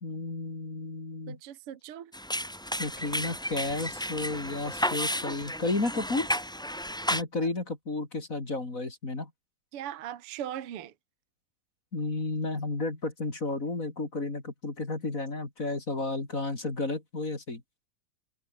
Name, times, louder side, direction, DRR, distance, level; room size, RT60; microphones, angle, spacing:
voice 1, 0.0-1.4 2.8-6.3 7.1-9.3 11.9-17.6, left 2 dB, 25° left, 3.5 m, -32 dB
voice 2, 1.3-2.1 9.7-10.9, right 10 dB, 55° right, 1.8 m, -39 dB
sound 1, 2.1-7.2, equal, 5° left, 0.3 m, -32 dB
omnidirectional pair, 4.1 m